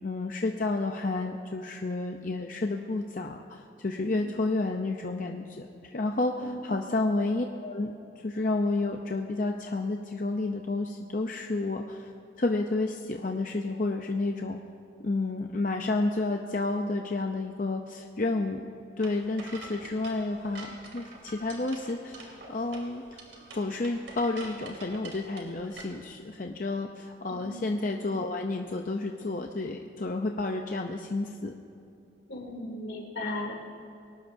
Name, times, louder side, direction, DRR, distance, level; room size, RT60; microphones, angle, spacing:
voice 1, 0.0-12.1 12.4-14.6 15.0-18.6 19.0-23.2 23.5-31.5, left 2 dB, 45° left, 3 dB, 0.6 m, -30 dB
voice 2, 6.4-6.7 27.3-27.5 32.3-33.6, left 2 dB, 75° left, 0 dB, 2.9 m, -36 dB
sound 1, 19.0-25.8, right 2 dB, 90° right, 2.9 m, -46 dB
23.0 x 18.5 x 2.7 m, 2.7 s
head